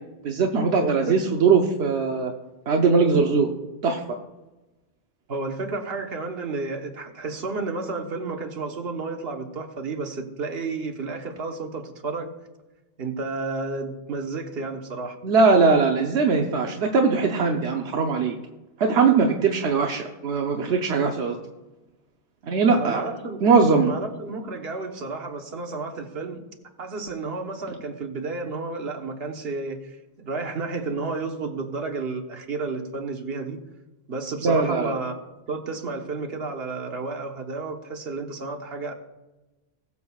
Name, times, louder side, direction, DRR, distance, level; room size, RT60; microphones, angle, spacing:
voice 1, 0.2-2.3 2.7-3.5 3.8-4.0 15.2-18.3 18.8-21.4 22.4-23.1 23.4-23.9 34.4-34.9, right 4 dB, 80° right, 2 dB, 1.1 m, -20 dB
voice 2, 0.8-1.2 5.3-12.3 13.0-15.2 22.7-23.4 23.8-26.5 26.8-33.6 34.1-35.1 35.5-38.9, right 3 dB, 65° right, 3 dB, 1.4 m, -31 dB
20.5 x 7.2 x 2.3 m, 1.1 s
omnidirectional pair, 1.1 m